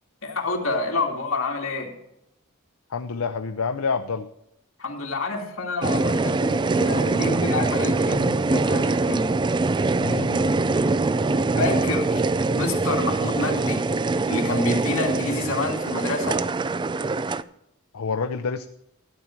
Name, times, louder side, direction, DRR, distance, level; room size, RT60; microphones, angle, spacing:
voice 1, 0.2-1.9 4.8-9.3 11.6-12.2 12.6-13.9 14.2-16.4, left 2 dB, 65° left, 0 dB, 2.4 m, -28 dB
voice 2, 2.9-4.3 10.0-10.5 17.9-18.6, left 5 dB, 90° left, 8 dB, 0.6 m, -28 dB
sound 1, 5.8-17.4, right 3 dB, 20° right, 0.3 m, -23 dB
13.0 x 9.0 x 4.5 m, 0.80 s
head